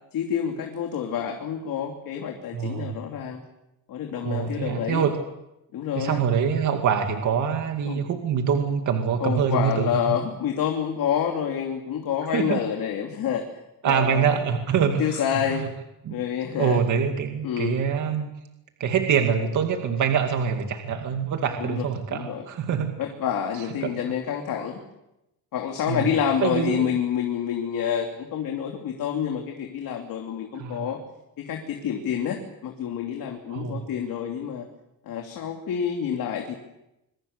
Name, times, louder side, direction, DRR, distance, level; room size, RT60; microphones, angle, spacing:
voice 1, 0.1-3.4 3.9-5.1 5.7-6.2 7.9-8.0 9.2-13.4 13.8-14.3 15.0-15.7 16.1-16.8 17.4-17.8 21.6-22.4 23.0-24.8 25.5-31.0 31.4-34.6 35.0-36.6, left 8 dB, 65° left, 2 dB, 3.0 m, -28 dB
voice 2, 2.5-3.0 4.2-5.1 6.0-10.2 12.3-12.6 13.8-15.2 15.5-15.7 16.1-16.2 16.6-18.3 18.8-22.9 23.8-23.9 25.9-26.1 26.4-26.9 30.6-30.9 33.5-33.8, right 7 dB, 55° right, 4 dB, 2.3 m, -25 dB
26.5 x 23.5 x 6.7 m, 0.90 s
cardioid pair, 160°, 36 cm